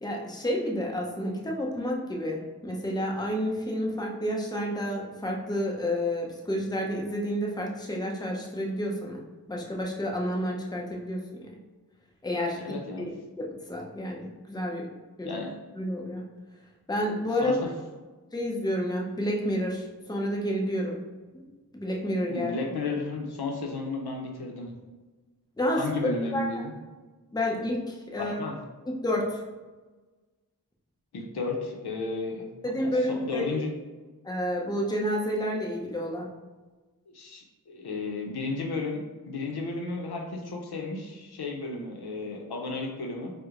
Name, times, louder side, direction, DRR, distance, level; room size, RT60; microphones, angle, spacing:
voice 1, 0.0-9.2 9.5-11.5 12.2-12.7 13.4-14.9 15.2-15.4 15.8-16.2 16.9-17.6 18.3-21.0 21.3-21.4 21.7-22.5 25.6-25.8 26.3-26.5 27.3-28.4 28.9-29.4 32.6-33.5 34.2-36.3, equal, 10° left, -1 dB, 0.6 m, -30 dB
voice 2, 12.5-13.1 15.2-15.5 17.4-17.7 22.3-24.7 25.8-26.7 28.1-28.6 31.1-33.7 37.1-43.3, left 3 dB, 75° left, 1 dB, 0.6 m, -33 dB
4.4 x 2.1 x 2.5 m, 1.3 s
cardioid pair, 40°, 39 cm